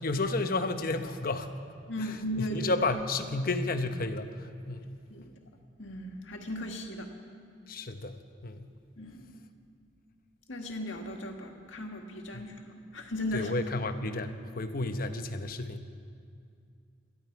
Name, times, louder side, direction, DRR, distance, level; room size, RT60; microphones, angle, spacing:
voice 1, 0.0-1.5 2.0-2.1 2.4-5.0 7.7-8.2 8.4-8.7 12.3-12.5 13.3-15.9, left 2 dB, 50° left, 8 dB, 0.9 m, -32 dB
voice 2, 1.9-2.7 5.1-5.4 5.8-7.1 9.0-9.4 10.5-13.5, left 1 dB, 85° left, 3 dB, 1.8 m, -37 dB
22.0 x 13.5 x 4.7 m, 2.3 s
head